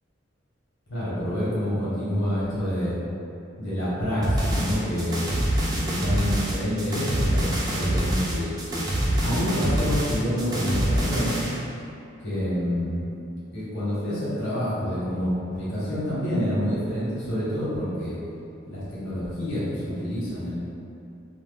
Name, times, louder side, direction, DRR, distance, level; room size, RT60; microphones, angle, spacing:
voice 1, 0.9-3.0 3.6-5.3 5.8-8.8 9.2-11.3 12.2-13.0 13.3-18.2 18.6-20.6, equal, 75° left, -10 dB, 1.1 m, -27 dB
sound 1, 4.2-11.5, right 1 dB, 20° right, 0.3 m, -25 dB
2.5 x 2.1 x 3.2 m, 2.6 s
head